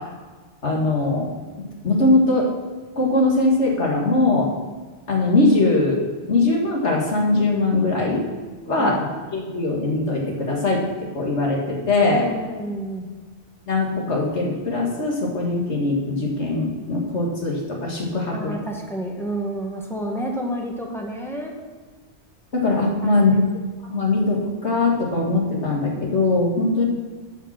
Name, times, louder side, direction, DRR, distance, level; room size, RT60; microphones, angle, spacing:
voice 1, 0.6-1.3 1.8-2.5 3.0-4.5 5.1-6.0 6.3-8.2 8.7-12.3 13.7-18.5 22.5-23.3 23.9-26.8, left 2 dB, 80° left, -2 dB, 2.4 m, -21 dB
voice 2, 12.1-13.1 18.3-21.5 23.0-23.4, right 1 dB, ahead, -1 dB, 1.6 m, -30 dB
12.0 x 5.9 x 5.9 m, 1.4 s
omnidirectional pair, 1.2 m